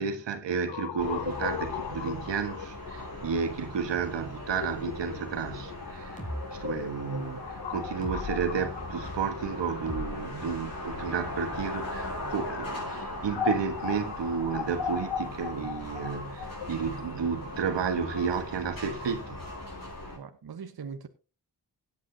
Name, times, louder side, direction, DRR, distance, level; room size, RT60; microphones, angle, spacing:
voice 1, 0.0-6.2 6.5-19.4, right 6 dB, 85° right, 1.5 m, -32 dB
sound 1, 0.7-10.5 11.3-18.2, left 8 dB, 85° left, 0.9 m, -38 dB
sound 2, 1.0-20.2, left 1 dB, 55° left, 7.7 m, -39 dB
sound 3, 6.2-6.4 8.0-8.5 9.9-11.0, left 1 dB, 20° left, 4.1 m, -38 dB
voice 2, 10.3-10.6 20.1-21.1, right 6 dB, 60° right, 1.2 m, -42 dB
16.5 x 9.3 x 2.8 m
cardioid pair, 55°, 42 cm